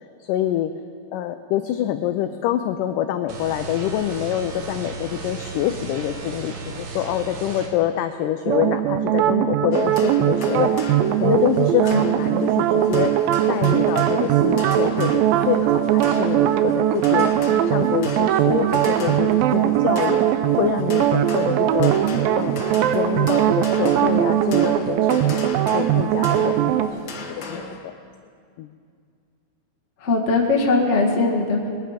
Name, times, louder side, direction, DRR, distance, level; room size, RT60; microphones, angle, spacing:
voice 1, 0.2-0.7 1.1-10.7 11.2-13.2 13.5-17.3 17.7-20.2 20.5-22.0 22.3-26.9 27.5-27.9 28.6-28.7, left 12 dB, 85° left, 9 dB, 1.9 m, -26 dB
sound 1, 3.3-7.7, right 4 dB, 65° right, 2.7 m, -34 dB
sound 2, 8.5-26.9, right 11 dB, 80° right, 2.3 m, -20 dB
sound 3, 9.7-27.8, left 4 dB, 65° left, 1.1 m, -37 dB
voice 2, 30.0-31.7, left 3 dB, 40° left, -2 dB, 1.0 m, -20 dB
21.5 x 10.0 x 5.0 m, 2.3 s
omnidirectional pair, 4.2 m